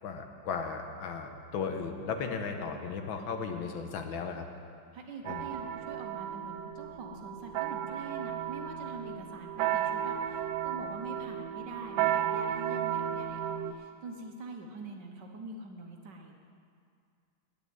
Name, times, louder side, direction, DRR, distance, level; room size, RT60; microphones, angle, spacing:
voice 1, 0.0-4.5 5.2-5.5, left 5 dB, 80° left, 5 dB, 1.7 m, -36 dB
voice 2, 4.9-16.3, right 3 dB, 60° right, 3 dB, 1.6 m, -44 dB
sound 1, 5.2-13.7, right 10 dB, 80° right, 1.3 m, -34 dB
8.8 x 8.6 x 9.4 m, 2.3 s
omnidirectional pair, 2.2 m